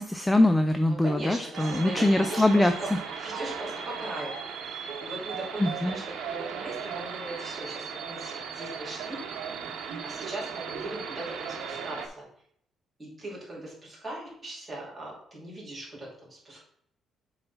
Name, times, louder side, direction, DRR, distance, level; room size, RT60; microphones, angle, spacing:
voice 1, 0.0-3.0 5.6-6.0, left 1 dB, 5° left, 7 dB, 0.4 m, -23 dB
voice 2, 1.0-2.9 3.2-4.3 4.6-6.0 6.3-9.2 10.0-12.2 13.0-16.6, right 1 dB, 15° right, -5 dB, 2.8 m, -39 dB
sound 1, 1.5-12.1, right 6 dB, 80° right, 1.0 m, -37 dB
6.8 x 4.0 x 5.8 m, 0.69 s
cardioid pair, 170°, 0 cm